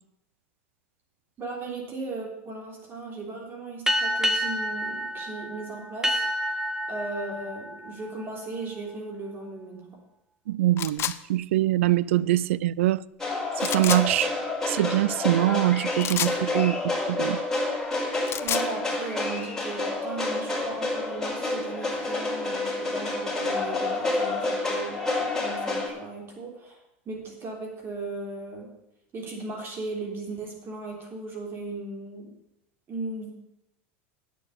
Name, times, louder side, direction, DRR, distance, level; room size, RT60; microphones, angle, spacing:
voice 1, 1.4-6.6 6.9-9.9 18.4-26.8 27.0-28.7 29.1-32.3 32.9-33.3, right 3 dB, 35° right, 3.4 m, -37 dB
sound 1, 3.9-8.9, equal, 10° right, 1.1 m, -29 dB
voice 2, 10.5-11.0 11.3-13.0 13.6-14.3 14.7-17.4, right 15 dB, 85° right, 0.3 m, -23 dB
sound 2, 10.8-11.2 13.6-14.0 16.0-16.4 18.1-18.7, left 11 dB, 40° left, 0.6 m, -29 dB
sound 3, 13.2-25.9, left 2 dB, 10° left, 4.3 m, -29 dB
9.0 x 6.7 x 8.5 m
supercardioid pair, 105°, 7 cm